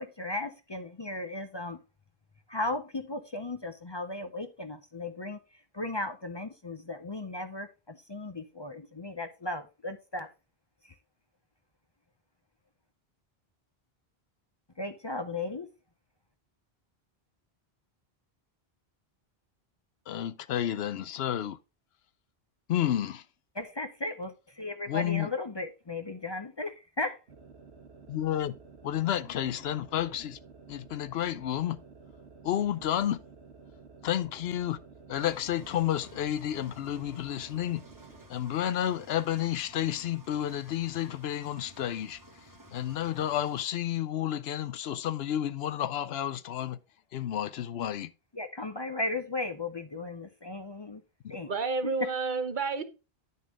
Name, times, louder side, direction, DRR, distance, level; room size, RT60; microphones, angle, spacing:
voice 1, 0.0-1.8 2.5-5.4 5.7-10.3 14.8-15.7 23.5-27.2 48.3-51.0 51.3-51.5, left 2 dB, 30° left, 0.5 m, -36 dB
voice 2, 20.1-21.6 22.7-23.2 24.9-25.3 28.1-28.5 28.8-30.4 30.7-31.8 32.4-33.2 34.0-34.8 35.1-37.8 38.3-42.2 42.7-46.8 47.1-48.1 51.2-51.4, left 11 dB, 75° left, 0.8 m, -31 dB
sound 1, 27.3-38.3, right 4 dB, 85° right, 1.4 m, -52 dB
Engine, 35.2-43.6, right 1 dB, 20° right, 1.0 m, -54 dB
voice 3, 51.5-52.8, right 4 dB, 50° right, 1.0 m, -30 dB
9.5 x 5.6 x 3.6 m
omnidirectional pair, 1.1 m